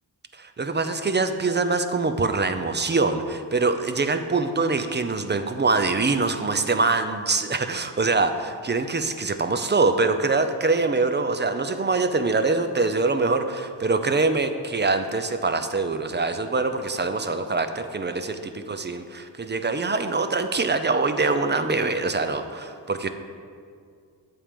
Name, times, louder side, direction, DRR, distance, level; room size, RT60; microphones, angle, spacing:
voice 1, 0.4-23.1, right 3 dB, 25° right, 9 dB, 0.5 m, -24 dB
8.4 x 3.8 x 6.8 m, 2.2 s
cardioid pair, 60°, 43 cm